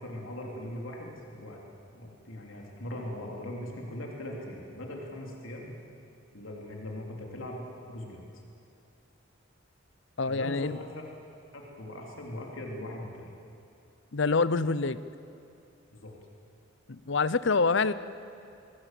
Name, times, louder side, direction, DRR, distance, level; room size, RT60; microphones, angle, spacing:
voice 1, 0.0-1.6 1.9-5.8 6.3-8.2 10.3-11.0 11.5-13.3 15.9-16.1, left 1 dB, 85° left, -1 dB, 3.6 m, -40 dB
voice 2, 10.2-10.8 14.1-15.0 16.9-17.9, left 4 dB, 65° left, 15 dB, 0.8 m, -26 dB
25.0 x 22.0 x 7.7 m, 2.7 s
head